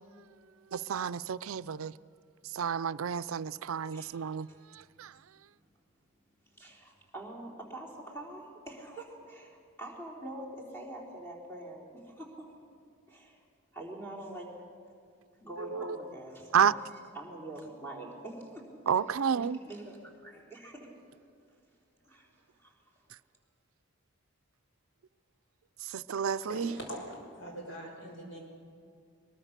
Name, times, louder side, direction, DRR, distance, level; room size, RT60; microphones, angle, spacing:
voice 1, 0.7-1.9 2.5-4.5 5.0-5.1 15.6-15.8 16.5-16.7 18.9-19.6 25.9-26.7, right 7 dB, 85° right, 0.4 m, -30 dB
voice 2, 6.5-12.5 13.1-13.4 13.7-14.5 15.4-16.8 17.1-18.7 19.2-20.9 22.0-22.3 22.6-22.7, right 1 dB, 15° left, 3.6 m, -45 dB
voice 3, 26.5-28.4, equal, 60° left, 5.9 m, -42 dB
22.5 x 22.0 x 6.7 m
head